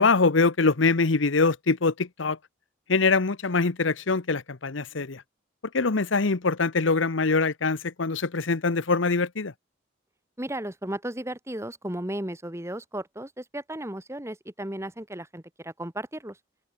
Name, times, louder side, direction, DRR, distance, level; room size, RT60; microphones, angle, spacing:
voice 1, 0.0-2.4 2.9-5.2 5.7-9.5, left 4 dB, 80° left, 1.0 m, -23 dB
voice 2, 10.4-16.4, right 1 dB, 15° right, 1.9 m, -35 dB
open air
head